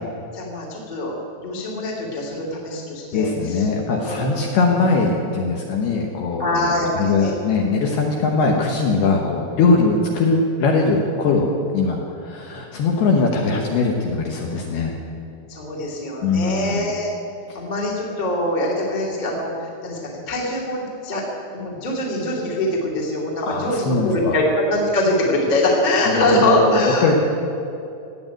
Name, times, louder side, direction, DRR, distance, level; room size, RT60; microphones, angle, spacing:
voice 1, 0.3-1.1 1.4-3.6 3.9-4.7 6.4-7.3 15.5-17.1 17.5-21.2 21.5-27.1, left 1 dB, 30° left, -3 dB, 0.8 m, -23 dB
voice 2, 3.1-11.5 11.7-15.0 16.2-16.9 23.4-24.4 26.1-27.2, left 4 dB, 70° left, 0 dB, 2.5 m, -21 dB
16.0 x 8.7 x 9.1 m, 2.7 s
omnidirectional pair, 6.0 m